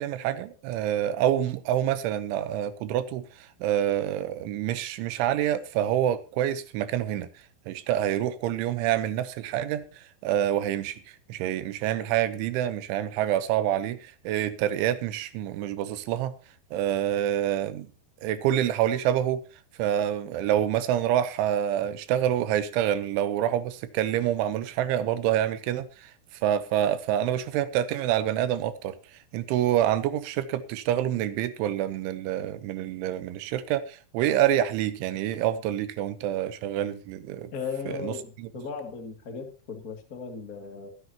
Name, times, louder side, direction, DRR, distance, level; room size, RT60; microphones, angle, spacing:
voice 1, 0.0-7.3 7.7-9.8 10.2-11.0 11.3-16.3 16.7-17.9 18.2-19.4 19.8-26.1 26.4-28.9 29.3-37.5 38.0-38.5, right 11 dB, 75° right, 3.1 m, -27 dB
voice 2, 37.5-40.9, left 5 dB, 55° left, 0.9 m, -37 dB
22.5 x 10.0 x 2.9 m
omnidirectional pair, 6.0 m